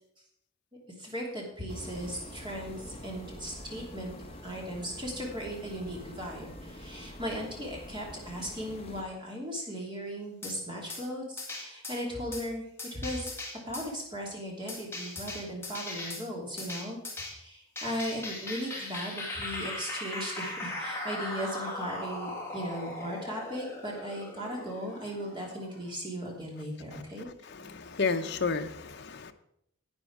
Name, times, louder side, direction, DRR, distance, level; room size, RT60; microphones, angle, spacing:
voice 1, 1.0-4.1 4.4-12.6 12.9-13.3 13.6-27.3, equal, 20° right, -2 dB, 2.8 m, -37 dB
sound 1, 1.7-9.0, equal, 25° left, 1.2 m, -45 dB
sound 2, 10.4-10.6 10.9-11.0 11.4-12.0 12.3-12.5 12.8-13.9 14.7-16.2 16.6-17.3 17.8-25.9, left 2 dB, 10° left, 2.0 m, -39 dB
voice 2, 27.6-29.3, left 4 dB, 55° left, 7 dB, 0.8 m, -31 dB
11.0 x 8.9 x 4.7 m, 0.73 s
head